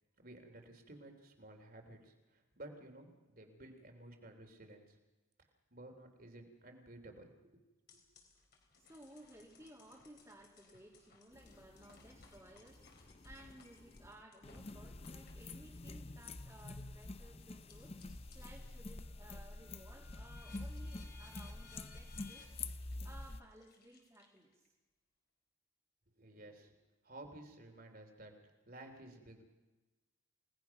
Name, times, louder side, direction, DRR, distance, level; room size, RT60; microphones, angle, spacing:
voice 1, 0.2-5.0 5.7-7.6 26.2-26.7 27.0-28.3 28.7-29.4, right 1 dB, 45° right, 4 dB, 3.4 m, -54 dB
sound 1, 7.9-18.6 19.0-24.7, left 4 dB, 50° left, 4.0 m, -64 dB
voice 2, 8.8-22.4 23.0-24.7, right 1 dB, 15° right, -5 dB, 2.9 m, -59 dB
sound 2, 11.3-23.4, left 2 dB, 30° left, 0.7 m, -48 dB
29.0 x 18.5 x 6.0 m, 1.1 s
head